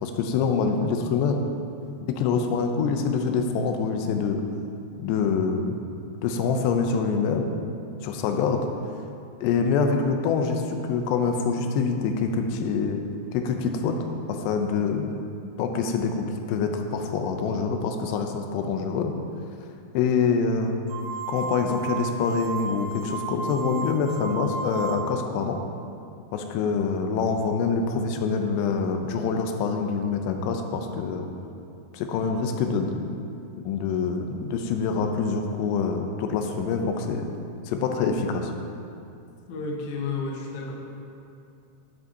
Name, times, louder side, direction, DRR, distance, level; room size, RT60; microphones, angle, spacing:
voice 1, 0.0-1.4 2.2-4.4 5.0-5.8 6.2-7.5 8.0-8.6 9.4-13.0 13.3-14.0 14.3-15.2 15.6-19.1 19.9-20.7 21.3-25.6 26.3-31.3 31.9-33.2 33.6-37.3 37.7-38.5, left 5 dB, 90° left, 4 dB, 2.8 m, -25 dB
sound 1, 20.9-25.3, right 4 dB, 80° right, 2.6 m, -33 dB
voice 2, 39.5-40.7, left 4 dB, 70° left, -1 dB, 1.8 m, -31 dB
11.5 x 7.7 x 2.8 m, 2.6 s
omnidirectional pair, 4.8 m